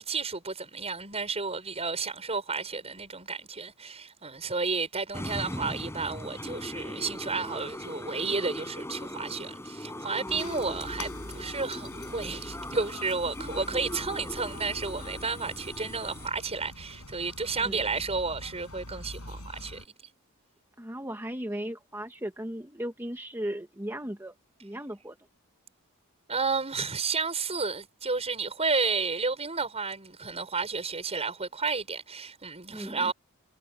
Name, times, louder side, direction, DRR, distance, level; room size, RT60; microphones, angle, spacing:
voice 1, 0.0-19.9 26.3-33.1, right 4 dB, 30° right, 6.5 m, -32 dB
sound 1, 5.1-16.3, left 1 dB, 10° left, 7.6 m, -39 dB
sound 2, 10.3-19.9, left 2 dB, 90° left, 7.6 m, -44 dB
voice 2, 20.8-24.3 24.6-25.2 32.7-33.1, right 1 dB, 10° right, 1.9 m, -36 dB
head